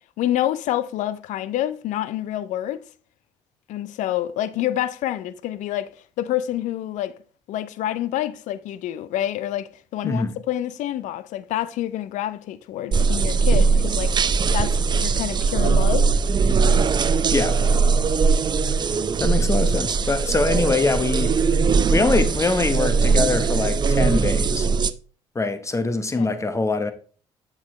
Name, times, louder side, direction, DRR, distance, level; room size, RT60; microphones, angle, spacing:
voice 1, 0.2-2.8 3.7-5.9 6.2-7.1 7.5-14.1 14.5-16.1 26.2-26.4, left 12 dB, 70° left, 0.5 m, -27 dB
sound 1, 12.9-24.9, right 4 dB, 35° right, 0.5 m, -20 dB
voice 2, 19.2-21.5 21.9-24.7 25.3-26.9, left 3 dB, 20° left, 1.0 m, -23 dB
7.2 x 6.4 x 3.1 m
hypercardioid pair, 60°, 13 cm